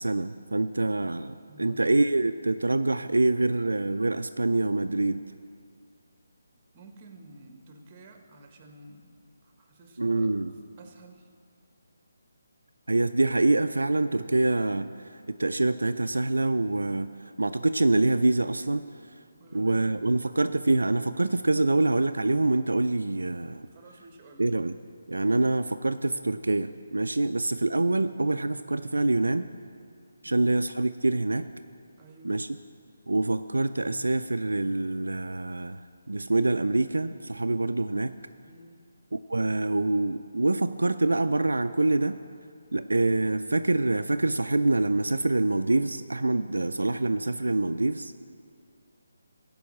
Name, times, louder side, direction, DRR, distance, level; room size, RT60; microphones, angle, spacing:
voice 1, 0.0-5.2 10.0-10.5 12.9-17.1 17.4-18.9 19.5-23.7 24.4-24.7 25.1-29.5 30.2-31.5 32.2-32.5 33.1-38.1 39.1-42.2 42.7-48.1, right 2 dB, 80° right, 9 dB, 0.4 m, -25 dB
voice 2, 1.5-1.8 6.7-9.1 9.6-10.3 10.8-11.3 19.4-20.2 23.7-24.5 30.2-30.5 32.0-32.4 38.5-38.8, right 2 dB, 25° right, 5 dB, 1.2 m, -51 dB
15.5 x 5.4 x 7.3 m, 2.3 s
figure-of-eight pair, 150°, 0 cm